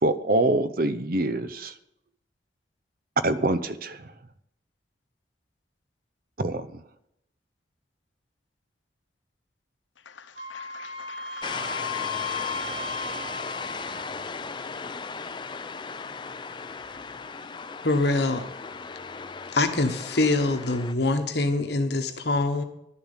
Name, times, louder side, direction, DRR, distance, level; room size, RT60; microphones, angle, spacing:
voice 1, 0.0-1.7 3.2-4.1 6.4-6.8, right 2 dB, 50° right, 0.6 m, -25 dB
voice 2, 10.0-13.6, left 7 dB, 90° left, 0.8 m, -47 dB
Wind instrument woodwind instrument, 10.4-14.3, left 3 dB, 35° right, 1.9 m, -35 dB
sound 1, 11.4-20.9, left 5 dB, 25° left, 0.4 m, -36 dB
voice 3, 17.8-18.4 19.5-22.6, left 2 dB, 60° left, 1.2 m, -24 dB
11.5 x 7.1 x 7.3 m
head